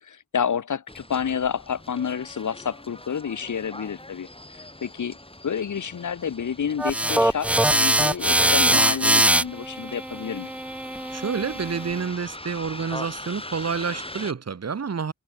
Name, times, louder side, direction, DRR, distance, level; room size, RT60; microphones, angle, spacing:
voice 1, 0.0-4.3 4.8-5.2 5.4-10.5, left 7 dB, 65° left, 1.1 m, -29 dB
Bus, 0.9-14.3, left 1 dB, 15° left, 6.1 m, -42 dB
sound 1, 6.8-12.0, right 1 dB, 5° right, 0.4 m, -22 dB
voice 2, 11.1-15.1, right 6 dB, 50° right, 1.2 m, -29 dB
cardioid pair, 40°, 32 cm